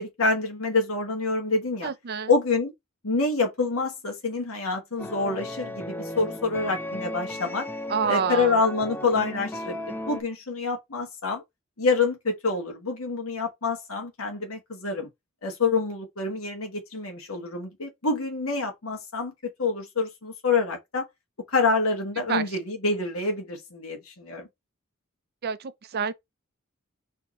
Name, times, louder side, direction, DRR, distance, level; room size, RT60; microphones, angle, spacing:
voice 1, 0.0-1.9 2.3-2.7 3.0-7.7 8.1-11.4 11.8-15.1 15.4-21.1 21.5-24.5, left 3 dB, 75° left, 1.2 m, -27 dB
voice 2, 1.8-2.3 7.9-8.6 22.3-22.6 25.4-26.1, right 6 dB, 50° right, 0.5 m, -28 dB
sound 1, 5.0-10.2, left 1 dB, 10° left, 0.5 m, -35 dB
4.5 x 2.8 x 4.0 m
head